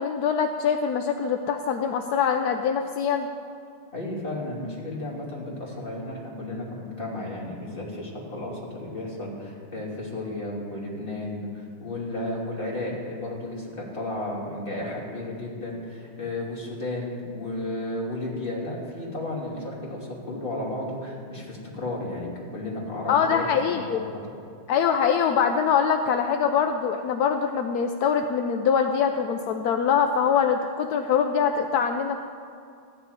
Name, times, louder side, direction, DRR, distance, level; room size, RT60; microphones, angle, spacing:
voice 1, 0.0-3.3 23.1-24.0 24.7-32.2, left 7 dB, 70° left, 5 dB, 0.9 m, -23 dB
voice 2, 3.9-24.0, left 1 dB, 25° left, -4 dB, 3.1 m, -33 dB
14.5 x 6.8 x 9.6 m, 2.4 s
omnidirectional pair, 2.2 m